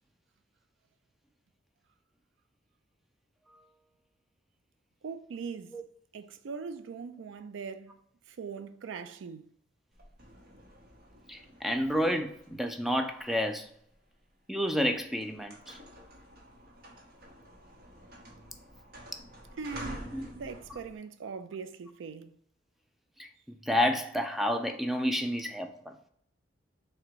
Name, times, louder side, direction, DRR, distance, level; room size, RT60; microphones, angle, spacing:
voice 1, 5.0-5.7 6.1-8.0 8.3-9.5 19.6-20.1 20.3-22.3, right 5 dB, 90° right, 0.4 m, -41 dB
sound 1, 9.9-14.1 14.7-14.9 15.2-21.0, right 1 dB, 50° right, 0.8 m, -49 dB
voice 2, 11.3-13.7 14.5-15.8 20.1-20.3 20.7-20.8 23.2-23.3 23.6-26.0, equal, ahead, 0.3 m, -30 dB
3.8 x 2.1 x 4.4 m
head